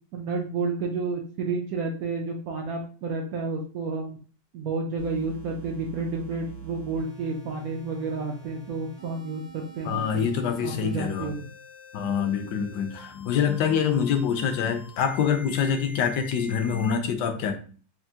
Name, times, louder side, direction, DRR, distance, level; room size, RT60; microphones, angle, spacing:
voice 1, 0.1-4.2 4.5-10.3 10.6-11.5, right 4 dB, 90° right, 0 dB, 0.7 m, -31 dB
sound 1, 5.0-17.0, right 1 dB, 45° left, 0.5 m, -45 dB
voice 2, 9.8-11.3 11.9-17.6, left 7 dB, 70° left, 6 dB, 1.1 m, -25 dB
5.8 x 2.0 x 2.7 m, 0.40 s
omnidirectional pair, 2.2 m